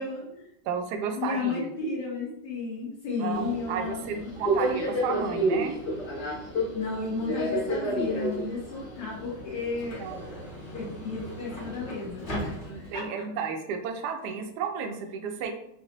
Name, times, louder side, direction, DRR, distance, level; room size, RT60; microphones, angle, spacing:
voice 1, 0.0-0.5 1.1-4.3 6.7-10.0 10.7-12.5 12.9-13.1, left 4 dB, 75° left, -7 dB, 1.8 m, -33 dB
voice 2, 0.6-1.7 3.2-5.7 10.0-10.2 12.7-15.5, right 6 dB, 85° right, 4 dB, 0.9 m, -32 dB
Subway metro underground, 3.3-13.1, right 1 dB, 40° left, 0.7 m, -32 dB
5.3 x 2.0 x 3.0 m, 0.78 s
omnidirectional pair, 2.4 m